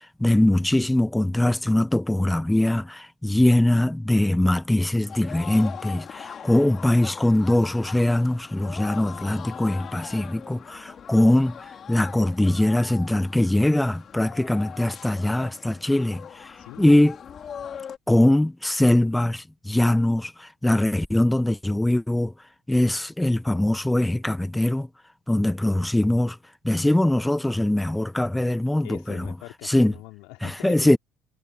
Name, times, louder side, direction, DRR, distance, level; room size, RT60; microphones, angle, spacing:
voice 1, 0.2-11.6 11.9-16.2 16.8-17.1 18.1-22.3 22.7-24.9 25.3-26.4 26.6-29.3 29.6-29.9 30.6-31.0, left 1 dB, 10° left, 0.9 m, -22 dB
sound 1, 5.0-18.0, left 8 dB, 45° left, 4.5 m, -41 dB
voice 2, 16.6-16.9 28.8-31.0, left 24 dB, 70° left, 4.5 m, -42 dB
hypercardioid pair, 60°, 0 cm